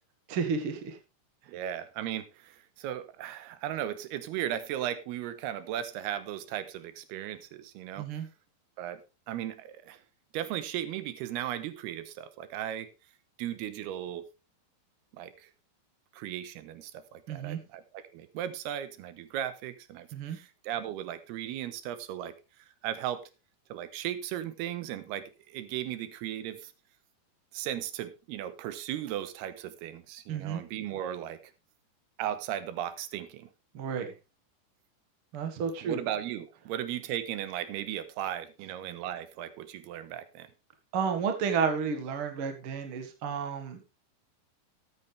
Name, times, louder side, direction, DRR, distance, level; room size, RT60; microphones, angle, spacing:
voice 1, 0.3-1.0 8.0-8.3 17.3-17.6 20.1-20.4 30.3-30.6 33.7-34.1 35.3-36.0 40.9-43.9, right 6 dB, 50° right, 6 dB, 1.7 m, -31 dB
voice 2, 1.5-8.1 8.8-9.0 9.3-10.0 10.3-12.9 13.4-14.3 15.1-15.5 16.1-22.3 22.8-23.2 23.7-26.7 27.5-31.4 32.2-33.5 35.8-40.5, right 11 dB, 85° right, 14 dB, 2.9 m, -36 dB
13.5 x 9.6 x 3.3 m, 0.27 s
omnidirectional pair, 4.5 m